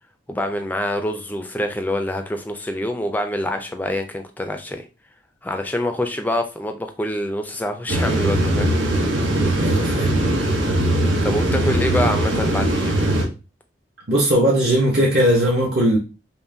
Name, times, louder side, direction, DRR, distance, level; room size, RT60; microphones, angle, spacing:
voice 1, 0.3-4.8 5.4-8.7 11.2-13.0, left 1 dB, 10° left, 6 dB, 0.4 m, -25 dB
sound 1, 7.9-13.2, right 1 dB, 90° right, 1.0 m, -20 dB
voice 2, 9.5-10.1 14.1-16.0, equal, 55° right, -5 dB, 0.8 m, -18 dB
5.4 x 2.2 x 2.6 m, 0.31 s
head